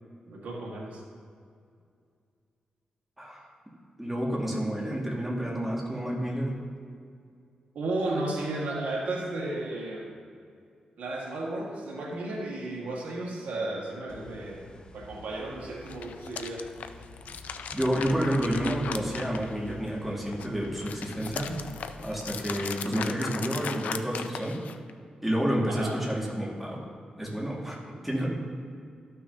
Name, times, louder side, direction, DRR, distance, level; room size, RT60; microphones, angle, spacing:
voice 1, 0.3-1.0 7.7-10.1 11.0-14.6 14.9-16.7 25.7-26.0, right 2 dB, 90° right, -3 dB, 1.7 m, -33 dB
voice 2, 4.0-6.5 17.7-21.6 22.0-24.6 25.2-26.8 27.2-28.3, equal, 5° right, -4 dB, 1.9 m, -29 dB
sound 1, 14.1-22.3, left 2 dB, 40° left, 0.7 m, -48 dB
sound 2, 15.8-19.9 20.3-24.9, left 7 dB, 80° left, 0.4 m, -38 dB
13.5 x 6.2 x 2.8 m, 2.3 s
cardioid pair, 95°, 3 cm